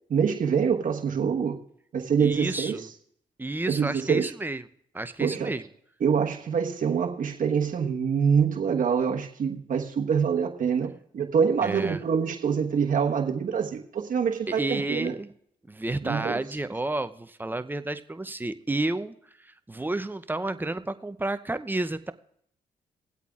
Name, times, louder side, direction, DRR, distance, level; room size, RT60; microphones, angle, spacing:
voice 1, 0.1-1.6 1.9-2.8 3.7-4.3 5.2-5.5 6.0-15.1 16.0-16.4, right 6 dB, 60° right, 1.2 m, -25 dB
voice 2, 2.2-2.9 3.4-4.7 4.9-5.6 11.6-12.0 14.5-15.3 15.7-22.1, right 2 dB, 10° right, 0.6 m, -31 dB
21.0 x 8.2 x 2.4 m
supercardioid pair, 60°, 16 cm